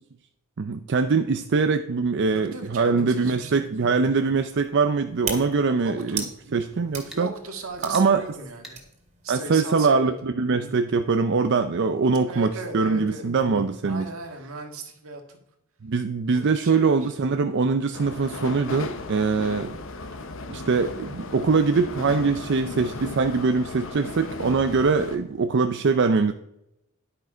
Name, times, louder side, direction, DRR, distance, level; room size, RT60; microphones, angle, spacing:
voice 1, 0.6-6.2 6.5-7.3 7.8-8.2 9.3-14.1 15.8-19.8 20.5-26.3, right 4 dB, 55° right, 9 dB, 0.5 m, -23 dB
voice 2, 2.3-3.7 5.8-6.3 7.0-8.9 9.2-10.3 12.3-13.3 13.8-15.4 16.3-17.1, right 3 dB, 80° right, 4 dB, 1.9 m, -38 dB
sound 1, 3.3-9.6, right 5 dB, 35° right, 2.4 m, -40 dB
sound 2, 7.1-7.3 7.9-8.1 8.6-8.8, equal, ahead, 1.8 m, -43 dB
sound 3, 17.9-25.2, left 3 dB, 65° left, 0.9 m, -36 dB
11.0 x 6.6 x 5.0 m, 0.85 s
head